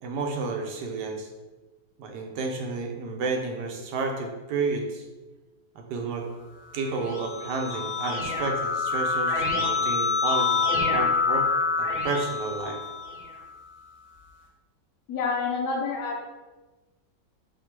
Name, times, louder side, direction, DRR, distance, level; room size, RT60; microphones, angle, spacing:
voice 1, 0.0-1.3 2.0-5.0 5.7-6.3 6.7-11.5 11.8-12.8, right 4 dB, 75° right, 2 dB, 1.2 m, -31 dB
Keyboard (musical), 6.8-13.4, left 4 dB, 50° left, 1.2 m, -26 dB
voice 2, 15.1-16.2, left 4 dB, 75° left, 1 dB, 1.2 m, -28 dB
3.6 x 2.7 x 4.3 m, 1.2 s
omnidirectional pair, 1.9 m